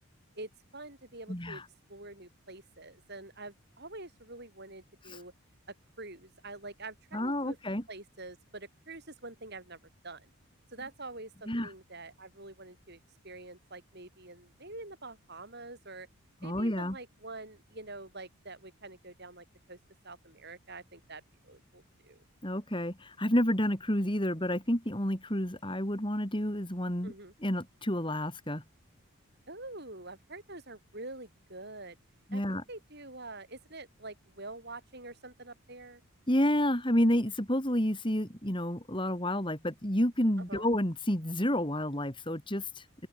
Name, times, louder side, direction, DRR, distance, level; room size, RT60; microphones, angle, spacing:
voice 1, 0.4-1.6 1.9-5.3 5.7-9.8 10.0-10.3 10.7-16.1 16.4-19.8 20.0-22.2 27.0-27.3 29.5-32.0 32.3-32.4 32.7-36.0 40.5-40.7, right 2 dB, 50° right, 7.8 m, -46 dB
voice 2, 1.3-1.6 5.1-5.2 7.1-7.8 11.5-11.7 16.4-17.0 22.4-27.1 27.4-28.6 32.3-32.6 36.3-42.7, left 1 dB, 20° left, 3.8 m, -30 dB
open air
head